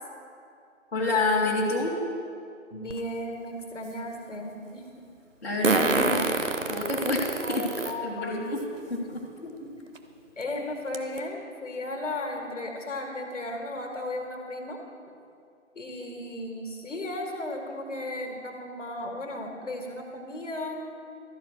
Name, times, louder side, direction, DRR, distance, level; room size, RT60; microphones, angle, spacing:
voice 1, 0.9-1.9 5.4-6.3 6.7-8.6 8.9-9.2, left 2 dB, 50° left, -4 dB, 1.4 m, -28 dB
voice 2, 2.7-4.8 7.4-8.4 9.3-9.7 10.4-14.8 15.7-20.8, left 1 dB, 65° left, 1 dB, 1.6 m, -35 dB
Fart, 2.9-3.0 5.6-7.9 8.6-8.7 10.0-10.1 10.4-10.5 10.9-11.2, right 3 dB, 70° right, 0.9 m, -26 dB
13.0 x 4.7 x 6.3 m, 2.4 s
figure-of-eight pair, 160°, 39 cm